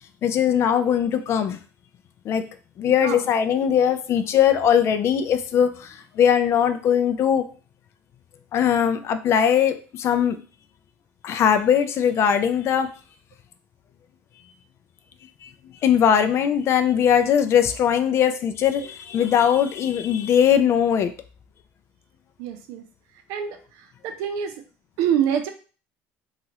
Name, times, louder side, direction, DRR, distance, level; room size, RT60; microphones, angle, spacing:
voice 1, 0.2-1.6 2.2-2.4 2.8-7.4 8.5-10.4 11.2-12.9 15.4-15.5 15.8-21.1, left 8 dB, 50° left, 9 dB, 0.4 m, -20 dB
voice 2, 22.4-22.8 23.3-24.6 25.0-25.5, right 9 dB, 75° right, 7 dB, 0.5 m, -26 dB
3.0 x 2.4 x 2.8 m, 0.37 s
supercardioid pair, 95°, 6 cm